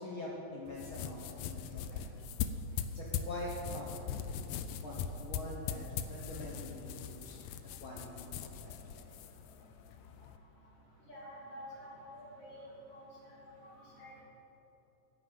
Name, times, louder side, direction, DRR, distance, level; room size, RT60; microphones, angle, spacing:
voice 1, 0.0-2.1 2.7-4.1 4.8-7.5 7.8-9.0, left 1 dB, 55° left, -4 dB, 1.5 m, -45 dB
sound 1, 0.7-10.4, left 7 dB, 85° left, 1.5 m, -41 dB
voice 2, 11.1-12.7 12.9-13.5 14.0-14.2, equal, 35° left, -6 dB, 2.9 m, -49 dB
10.0 x 6.9 x 9.2 m, 3.0 s
omnidirectional pair, 3.7 m